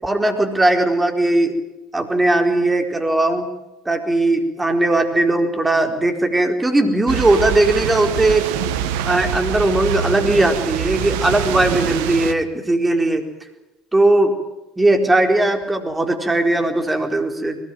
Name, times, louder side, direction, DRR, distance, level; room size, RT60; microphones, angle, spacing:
voice 1, 0.0-1.6 1.9-3.5 3.8-8.5 9.0-13.2 13.9-14.4 14.8-17.6, right 2 dB, 15° right, 4 dB, 4.4 m, -18 dB
sound 1, 7.1-12.3, right 9 dB, 70° right, 1.3 m, -25 dB
22.0 x 20.0 x 9.1 m, 1.0 s
hypercardioid pair, 65°, 0 cm